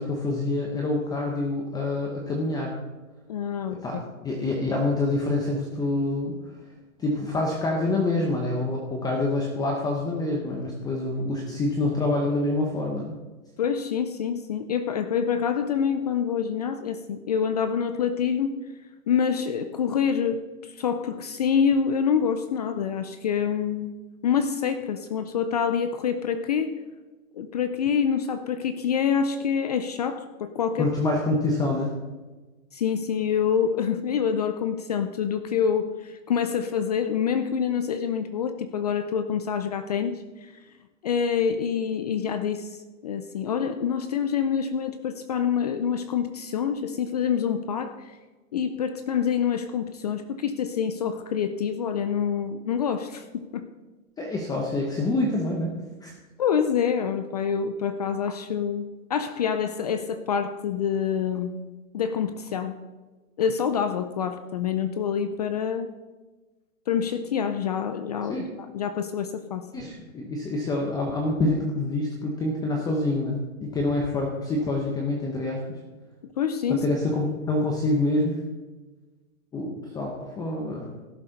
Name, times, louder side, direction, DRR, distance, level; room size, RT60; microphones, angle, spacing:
voice 1, 0.0-2.8 3.8-6.5 7.0-13.1 30.8-31.9 54.2-55.7 56.0-56.1 68.3-68.4 69.7-75.8 76.7-78.4 79.5-80.9, left 2 dB, 10° left, 0 dB, 0.8 m, -26 dB
voice 2, 3.3-4.0 13.6-18.7 19.1-23.9 24.2-26.8 27.4-30.9 32.7-40.5 41.0-48.0 48.5-53.7 56.4-61.5 61.9-62.7 63.4-65.9 66.9-68.4 68.7-69.7 76.4-76.9, left 7 dB, 30° left, 10 dB, 0.4 m, -26 dB
16.5 x 7.4 x 4.0 m, 1.2 s
hypercardioid pair, 150°, 42 cm